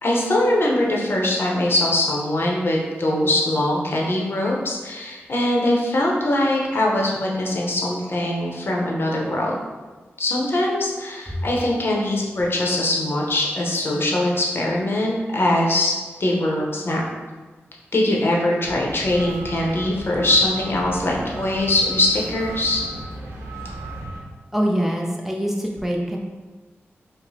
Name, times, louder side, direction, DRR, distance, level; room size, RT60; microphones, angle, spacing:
voice 1, 0.0-9.5 10.2-15.9 16.2-17.0 17.9-22.8, left 1 dB, 55° left, -2 dB, 0.7 m, -22 dB
sound 1, 18.6-24.2, right 2 dB, 80° right, 0.6 m, -35 dB
voice 2, 24.5-26.2, equal, 5° right, -1 dB, 0.4 m, -24 dB
4.8 x 2.0 x 2.7 m, 1.3 s
cardioid pair, 55°, 5 cm